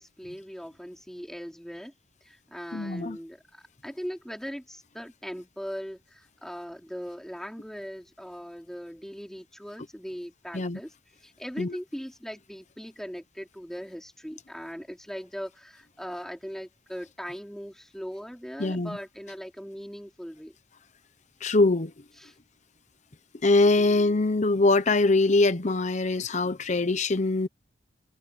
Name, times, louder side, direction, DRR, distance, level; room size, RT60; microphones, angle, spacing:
voice 1, 0.0-1.9 2.2-10.9 11.2-20.5 22.2-22.3, equal, 5° left, 3.2 m, -40 dB
voice 2, 2.7-3.2 10.5-10.8 11.6-11.8 18.6-19.0 21.4-21.9 23.4-27.5, left 2 dB, 40° left, 0.9 m, -23 dB
head